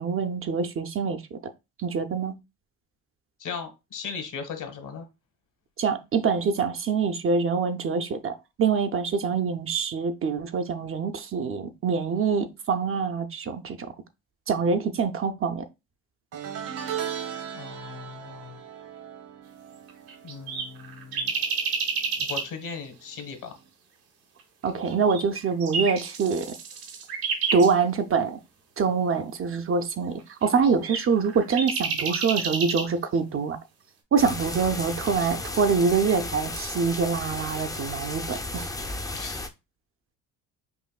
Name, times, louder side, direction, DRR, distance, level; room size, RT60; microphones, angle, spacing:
voice 1, 0.0-1.5 1.8-2.3 5.8-13.9 14.5-15.7 24.6-26.5 27.5-28.4 28.8-33.6 34.1-38.7, right 5 dB, 40° right, 0.5 m, -25 dB
voice 2, 3.4-5.0 17.5-18.6 20.2-21.3 22.2-23.5 39.1-39.5, left 6 dB, 60° left, 1.3 m, -38 dB
sound 1, 16.3-21.7 22.0-22.4 23.6-23.7, right 9 dB, 65° right, 1.2 m, -37 dB
sound 2, 19.9-22.4 24.9-27.7 30.4-32.9, right 5 dB, 85° right, 1.2 m, -30 dB
sound 3, 34.2-39.5, left 2 dB, 10° left, 0.5 m, -34 dB
5.5 x 2.6 x 2.3 m
supercardioid pair, 80°, 36 cm